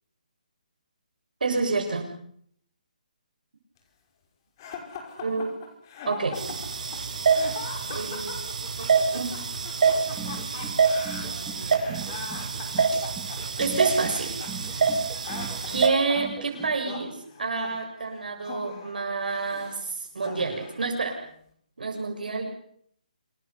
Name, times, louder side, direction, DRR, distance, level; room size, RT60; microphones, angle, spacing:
voice 1, 1.4-2.1 5.2-5.5 6.1-6.3 7.9-8.3 9.1-9.3 13.6-14.3 15.7-21.2 21.8-22.4, right 4 dB, 80° right, 3 dB, 6.9 m, -28 dB
sound 1, 4.6-19.8 20.2-20.9, left 5 dB, 30° left, 5.5 m, -41 dB
sound 2, 6.3-15.9, right 5 dB, 55° right, 7.6 m, -26 dB
sound 3, 9.9-16.8, right 6 dB, 10° right, 1.8 m, -41 dB
27.5 x 20.0 x 8.3 m, 0.66 s
hypercardioid pair, 165°, 5 cm